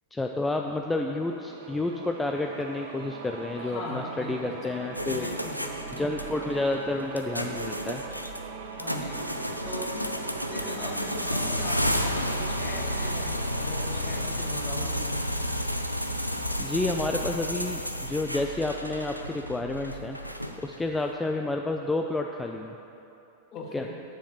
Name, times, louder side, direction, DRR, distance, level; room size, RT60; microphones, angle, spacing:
voice 1, 0.1-5.3 5.9-8.0 16.6-20.2 20.6-22.8 23.7-23.9, left 2 dB, 10° left, 2 dB, 0.4 m, -30 dB
sound 1, 1.2-15.8, right 5 dB, 60° right, 0.7 m, -42 dB
voice 2, 3.6-4.6 5.1-6.2 8.8-9.3 9.6-15.3 23.5-23.9, left 2 dB, 35° left, 0 dB, 1.5 m, -39 dB
sound 2, 4.9-20.9, equal, 90° left, 0.5 m, -32 dB
7.6 x 7.1 x 6.5 m, 2.8 s
figure-of-eight pair, 90°, 0 cm